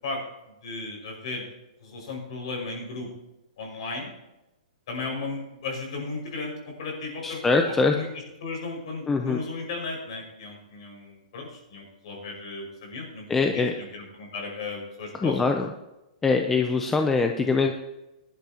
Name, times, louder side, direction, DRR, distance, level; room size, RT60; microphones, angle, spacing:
voice 1, 0.6-1.4 1.8-3.1 3.6-4.1 4.9-8.1 8.4-15.6, left 3 dB, 45° left, 1 dB, 5.5 m, -35 dB
voice 2, 7.2-7.9 9.1-9.4 13.3-13.7 15.2-15.7 16.2-17.7, left 4 dB, 5° left, 4 dB, 0.5 m, -23 dB
20.5 x 12.0 x 2.9 m, 0.95 s
hypercardioid pair, 180°, 4 cm